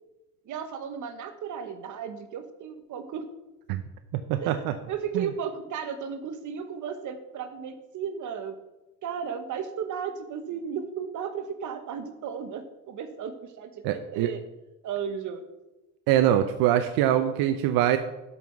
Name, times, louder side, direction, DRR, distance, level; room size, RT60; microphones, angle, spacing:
voice 1, 0.4-3.2 4.4-8.6 9.0-14.4 14.8-15.4, right 7 dB, 55° right, 9 dB, 1.2 m, -35 dB
voice 2, 4.3-4.7 5.1-5.3 13.8-14.3 16.1-18.0, right 11 dB, 85° right, 7 dB, 0.7 m, -23 dB
12.5 x 5.6 x 4.6 m, 1.0 s
cardioid pair, 110°, 35 cm